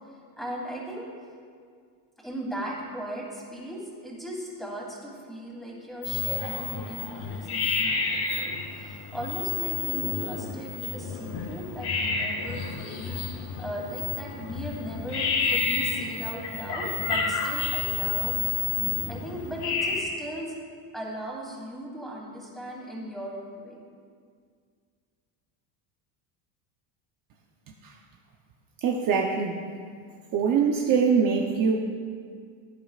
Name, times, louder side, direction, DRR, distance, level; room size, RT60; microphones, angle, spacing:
voice 1, 0.4-1.1 2.2-20.5 20.9-23.8, right 1 dB, ahead, -4 dB, 3.0 m, -38 dB
sound 1, 6.0-20.0, left 5 dB, 70° left, 2.8 m, -30 dB
voice 2, 28.8-29.7 30.3-31.8, right 6 dB, 45° right, 1 dB, 0.9 m, -23 dB
17.5 x 10.0 x 2.5 m, 2.1 s
cardioid pair, 125°, 46 cm